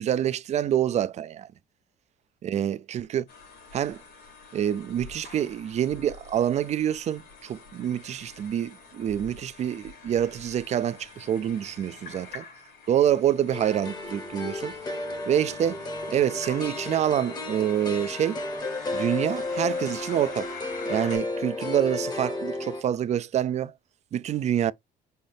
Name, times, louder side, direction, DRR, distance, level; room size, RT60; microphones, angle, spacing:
voice 1, 0.0-1.5 2.4-3.3 3.7-4.0 4.5-12.5 12.9-14.7 15.3-18.4 18.9-20.5 20.9-23.7 24.1-24.7, right 10 dB, 40° right, 0.4 m, -26 dB
sound 1, 3.3-21.2, left 4 dB, 80° left, 3.2 m, -46 dB
sound 2, 13.5-22.8, left 2 dB, 25° left, 0.9 m, -33 dB
5.6 x 2.6 x 3.3 m
cardioid pair, 110°, 17 cm